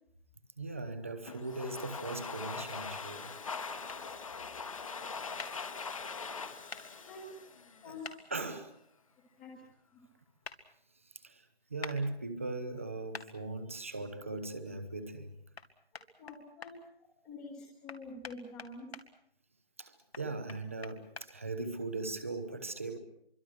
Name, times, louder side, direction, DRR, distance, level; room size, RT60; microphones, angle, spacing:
voice 1, 0.6-3.3 7.8-7.9 8.3-8.7 11.0-15.4 19.8-23.0, right 3 dB, 15° right, 0.8 m, -39 dB
Domestic sounds home sounds, 1.3-8.2, left 5 dB, 35° left, 1.3 m, -42 dB
sound 1, 3.9-4.0 5.4-5.5 6.7-6.8 8.0-8.2 10.4-10.6 11.8-12.0 13.1-13.3 15.5-15.7 15.9-16.7 17.9-19.0 20.1-21.3, left 4 dB, 90° left, 2.7 m, -44 dB
voice 2, 7.1-7.4 7.8-8.1 8.4-8.5 9.4-9.5 9.9-10.0 16.2-16.7 17.2-18.9, left 3 dB, 5° left, 1.2 m, -46 dB
25.0 x 24.5 x 6.3 m
figure-of-eight pair, 170°, 30 cm